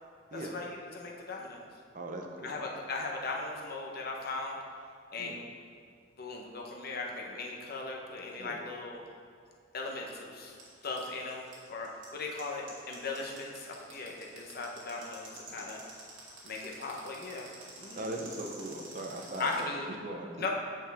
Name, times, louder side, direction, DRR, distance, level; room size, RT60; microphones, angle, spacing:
voice 1, 0.3-1.6 2.4-4.6 5.1-5.4 6.2-9.0 9.7-10.6 10.8-15.8 16.4-17.5 17.8-18.0 19.4-19.8 20.4-20.5, left 3 dB, 55° left, -1 dB, 1.0 m, -38 dB
voice 2, 1.9-2.6 5.2-5.4 8.4-8.6 17.9-20.5, right 1 dB, 45° right, 2 dB, 0.7 m, -40 dB
sound 1, 10.5-19.6, right 4 dB, 75° right, 2.0 m, -48 dB
8.2 x 6.9 x 3.5 m, 2.2 s
head